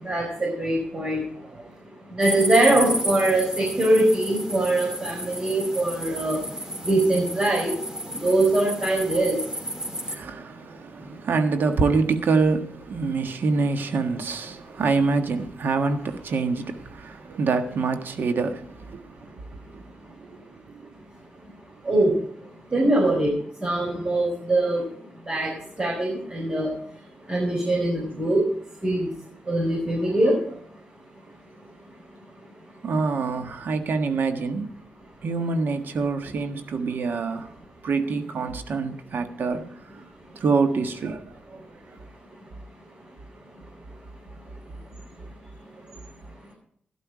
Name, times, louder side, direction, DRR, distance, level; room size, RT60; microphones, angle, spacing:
voice 1, 0.0-1.2 2.2-6.4 6.8-7.7 8.2-9.4 21.8-22.1 22.7-23.3 23.6-24.8 25.3-25.5 25.8-26.7 27.3-28.4 28.8-29.1 29.5-30.3, right 1 dB, 35° right, 4.7 m, -22 dB
sound 1, 2.2-10.2, equal, 20° right, 3.3 m, -32 dB
voice 2, 10.1-19.3 19.7-19.8 20.2-20.9 32.8-34.7 35.2-37.5 37.8-40.1 40.3-41.6, right 4 dB, 70° right, 1.5 m, -26 dB
12.5 x 11.5 x 4.9 m
cardioid pair, 65°, 4 cm